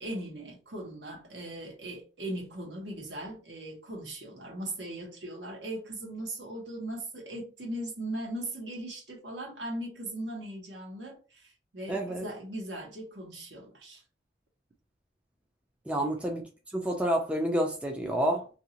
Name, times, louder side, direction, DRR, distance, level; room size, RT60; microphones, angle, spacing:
voice 1, 0.0-14.0 15.9-16.1, right 1 dB, 70° right, 1.2 m, -39 dB
voice 2, 11.9-12.2 15.9-18.5, right 1 dB, 5° right, 0.4 m, -29 dB
2.8 x 2.7 x 2.8 m
head